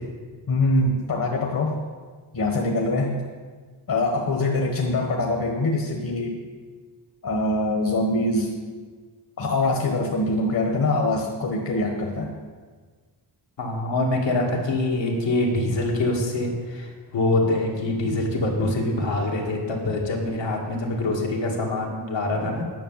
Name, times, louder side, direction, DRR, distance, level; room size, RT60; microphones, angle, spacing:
voice 1, 0.5-1.8 2.3-3.2 3.9-6.4 7.2-8.5 9.4-12.3, left 2 dB, 50° left, 1 dB, 1.4 m, -23 dB
voice 2, 13.6-22.6, left 2 dB, 85° left, -1 dB, 2.2 m, -25 dB
10.0 x 6.6 x 7.3 m, 1.5 s
wide cardioid pair, 130°, 43 cm